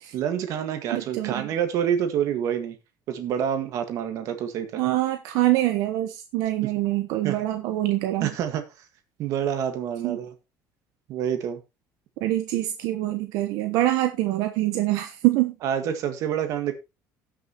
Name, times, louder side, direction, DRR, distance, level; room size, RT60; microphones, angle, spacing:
voice 1, 0.1-2.8 3.1-4.8 7.2-7.4 8.2-8.6 9.2-10.3 11.1-11.6 15.6-16.7, right 9 dB, 55° right, 1.7 m, -27 dB
voice 2, 0.9-1.5 4.8-8.3 10.0-10.2 12.2-15.5, right 16 dB, 75° right, 1.1 m, -25 dB
18.0 x 6.4 x 3.0 m
cardioid pair, 160°, 6 cm